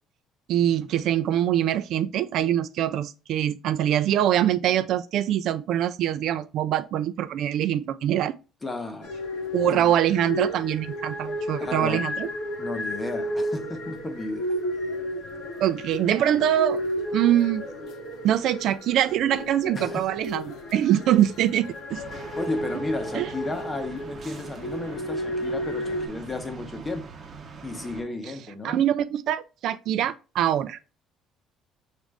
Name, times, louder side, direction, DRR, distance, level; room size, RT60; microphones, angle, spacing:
voice 1, 0.5-8.4 9.5-12.3 15.6-16.8 17.1-17.6 18.2-22.0 23.1-23.3 28.6-30.8, right 11 dB, 65° right, 0.3 m, -24 dB
voice 2, 8.6-9.1 9.7-9.9 11.6-12.0 12.6-14.5 19.7-20.1 22.4-27.0 27.6-28.8, left 2 dB, 15° left, 0.8 m, -33 dB
sound 1, 9.0-26.1, equal, 65° left, 0.9 m, -33 dB
sound 2, 21.9-28.0, right 5 dB, 35° right, 0.7 m, -43 dB
6.2 x 2.5 x 3.3 m
cardioid pair, 140°, 0 cm